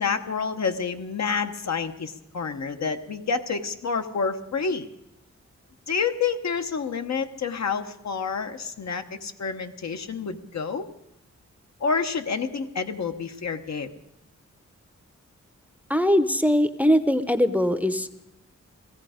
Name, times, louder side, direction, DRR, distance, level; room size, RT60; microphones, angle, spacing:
voice 1, 0.0-4.9 5.9-10.9 11.8-13.9, left 5 dB, 70° left, 7 dB, 0.9 m, -28 dB
voice 2, 15.9-18.3, equal, 5° right, 12 dB, 0.7 m, -21 dB
17.0 x 14.5 x 5.0 m, 0.86 s
wide cardioid pair, 105°, 29 cm